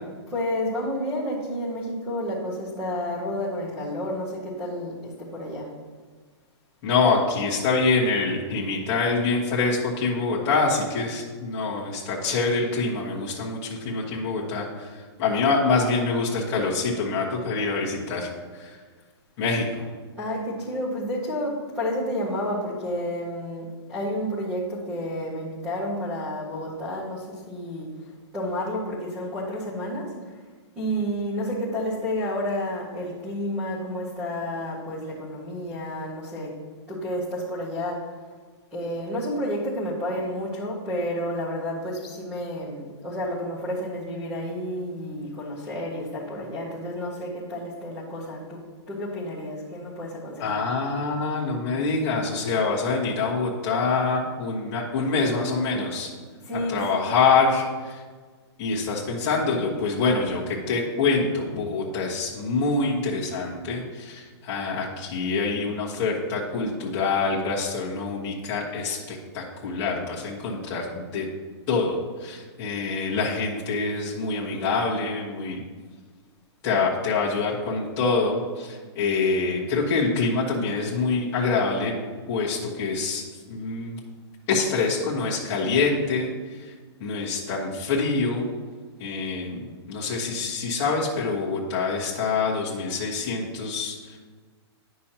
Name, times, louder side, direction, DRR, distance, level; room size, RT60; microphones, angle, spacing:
voice 1, 0.3-5.7 20.2-27.9 28.3-30.1 30.8-36.6 36.9-38.0 38.7-48.6 48.9-50.6 56.4-56.9, equal, 10° right, -8 dB, 0.8 m, -30 dB
voice 2, 6.8-18.8 19.4-19.9 50.4-56.1 56.5-58.0 58.6-71.3 71.7-75.6 76.6-81.9 82.3-84.0 84.5-86.7 87.0-88.5 89.0-89.6 89.9-94.2, left 4 dB, 15° left, -7 dB, 1.2 m, -25 dB
10.0 x 6.2 x 2.9 m, 1.5 s
hypercardioid pair, 180°, 15 cm